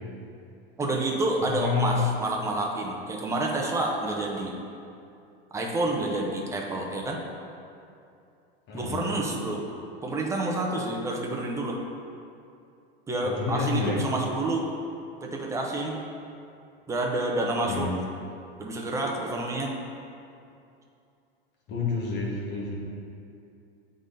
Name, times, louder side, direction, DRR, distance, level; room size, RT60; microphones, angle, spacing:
voice 1, 0.8-4.5 5.5-7.2 8.7-9.6 10.0-11.8 13.1-14.7 15.2-16.0 16.9-17.9 18.6-19.7, right 2 dB, 10° right, -1 dB, 0.7 m, -28 dB
voice 2, 1.4-2.0 8.7-9.0 13.2-14.0 17.7-17.9 21.7-22.7, left 4 dB, 35° left, -3 dB, 1.5 m, -29 dB
7.9 x 3.9 x 4.0 m, 2.6 s
supercardioid pair, 130°, 30 cm